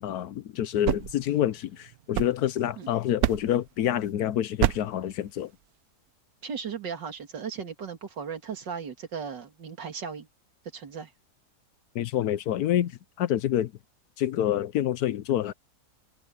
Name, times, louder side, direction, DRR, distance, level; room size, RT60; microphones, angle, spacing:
voice 1, 0.0-5.5 11.9-12.9 13.2-13.7 14.2-15.5, left 11 dB, 70° left, 1.1 m, -27 dB
sound 1, 0.6-2.8 3.2-3.7 4.6-5.0, right 13 dB, 70° right, 1.0 m, -29 dB
voice 2, 6.4-10.3 10.7-11.1, right 6 dB, 85° right, 2.8 m, -36 dB
omnidirectional pair, 1.8 m